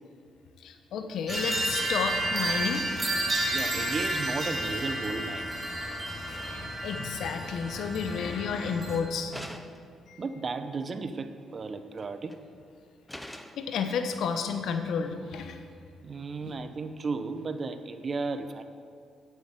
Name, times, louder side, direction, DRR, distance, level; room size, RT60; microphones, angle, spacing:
voice 1, 0.6-2.8 3.1-3.8 6.5-9.3 10.1-10.2 13.6-15.6 16.4-16.6, left 6 dB, 75° left, 7 dB, 1.1 m, -32 dB
sound 1, 1.3-9.0, right 1 dB, 20° right, 2.5 m, -31 dB
voice 2, 3.5-5.5 10.2-12.4 16.0-18.6, right 4 dB, 40° right, 10 dB, 0.8 m, -34 dB
sound 2, 9.3-10.0 12.0-12.4 13.1-13.7, left 1 dB, 5° left, 0.8 m, -42 dB
9.2 x 8.1 x 8.1 m, 2.2 s
cardioid pair, 90°, 0 cm